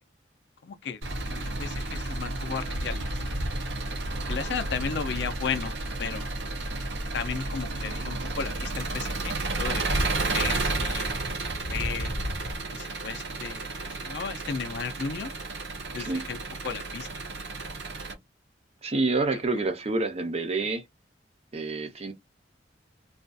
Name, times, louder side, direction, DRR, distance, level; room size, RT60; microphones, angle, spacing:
voice 1, 0.6-1.0 1.3-3.2 4.3-5.7 6.0-6.3 7.1-9.8 10.2-11.4 11.7-12.1 12.7-15.3 15.9-17.2 19.3-19.4, left 6 dB, 65° left, 0.4 m, -35 dB
Engine, 1.0-18.1, right 2 dB, 75° right, 0.8 m, -31 dB
voice 2, 18.8-20.8 21.5-22.1, right 3 dB, 35° right, 0.6 m, -28 dB
2.5 x 2.4 x 2.2 m
head